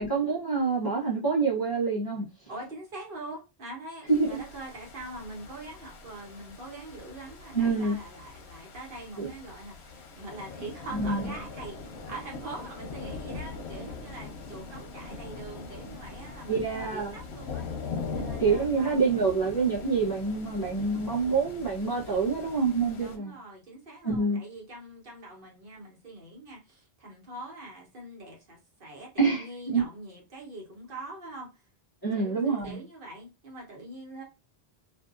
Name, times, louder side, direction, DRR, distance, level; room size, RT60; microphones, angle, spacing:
voice 1, 0.0-2.3 4.1-4.4 7.5-8.0 9.2-9.3 10.9-11.3 16.5-17.1 18.4-23.3 24.0-24.4 29.2-29.9 32.0-32.8, right 4 dB, 25° left, 0.7 m, -26 dB
voice 2, 2.5-17.7 18.1-19.4 23.0-31.5 32.1-34.2, right 2 dB, 60° right, 1.2 m, -43 dB
sound 1, 4.1-23.2, left 4 dB, 90° left, 0.9 m, -41 dB
2.6 x 2.4 x 2.4 m
omnidirectional pair, 1.1 m